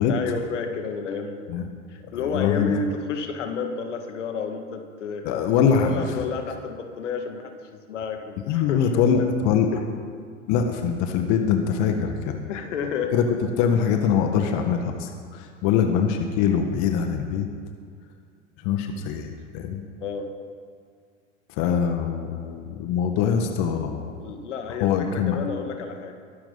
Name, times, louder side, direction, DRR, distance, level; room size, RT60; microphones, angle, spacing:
voice 1, 0.0-1.5 1.9-5.3 5.8-9.4 9.7-9.9 12.5-13.1 15.6-15.9 20.0-20.3 24.2-26.1, left 5 dB, 75° left, 5 dB, 2.1 m, -31 dB
voice 2, 2.1-2.7 5.2-6.2 8.5-9.7 10.5-12.4 13.1-17.5 18.6-19.8 21.5-24.1 24.8-25.4, left 7 dB, 50° left, 5 dB, 1.7 m, -23 dB
23.0 x 11.5 x 4.1 m, 2.2 s
hypercardioid pair, 95°, 37 cm